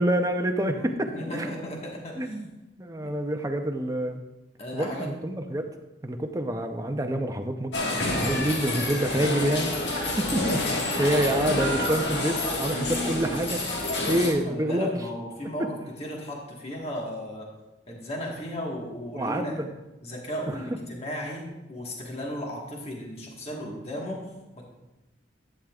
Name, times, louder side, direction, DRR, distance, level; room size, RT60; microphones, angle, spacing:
voice 1, 0.0-1.5 2.2-2.5 2.8-4.2 4.7-5.7 6.0-7.7 8.2-13.6 14.1-14.9 15.6-15.7 19.1-19.7 20.5-20.6, right 1 dB, 20° right, 5 dB, 0.6 m, -27 dB
voice 2, 0.7-2.3 3.0-3.1 4.6-5.1 14.0-17.5 17.9-19.6 20.0-24.2 24.6-24.7, equal, 35° left, -1 dB, 1.5 m, -35 dB
sound 1, 7.7-14.3, left 2 dB, 70° left, 1.6 m, -28 dB
11.0 x 9.1 x 2.4 m, 1.0 s
head